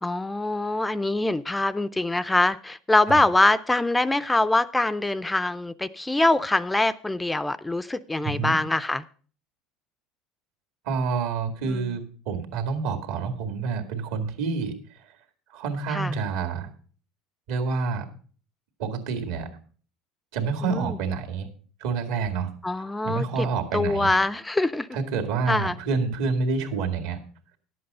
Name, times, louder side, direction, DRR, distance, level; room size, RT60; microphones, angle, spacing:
voice 1, 0.0-9.0 11.6-12.0 15.9-16.1 20.6-21.0 22.6-23.5 23.7-24.9 25.5-25.8, left 2 dB, 10° left, 14 dB, 0.4 m, -24 dB
voice 2, 8.2-8.6 10.9-14.7 15.5-16.7 17.5-18.1 18.8-19.5 20.3-21.5 21.8-22.5 23.0-24.1 24.9-27.2, right 5 dB, 80° right, 6 dB, 2.0 m, -28 dB
11.0 x 7.8 x 5.4 m, 0.43 s
supercardioid pair, 125°, 0 cm